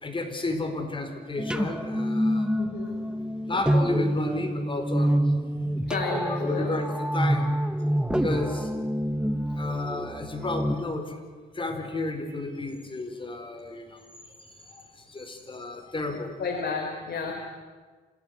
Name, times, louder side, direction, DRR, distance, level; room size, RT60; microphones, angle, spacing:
voice 1, 0.0-2.7 3.4-5.8 6.3-7.6 8.2-8.7 9.6-11.2 11.5-14.0 15.1-16.4, left 2 dB, 25° left, 6 dB, 4.7 m, -32 dB
sound 1, 1.4-10.7, equal, 5° right, 1.1 m, -27 dB
voice 2, 2.6-3.0 5.9-6.7 8.1-8.4 9.6-9.7 16.4-17.5, left 4 dB, 55° left, 2 dB, 3.8 m, -32 dB
27.5 x 16.5 x 9.6 m, 1.4 s
cardioid pair, 90°, 20 cm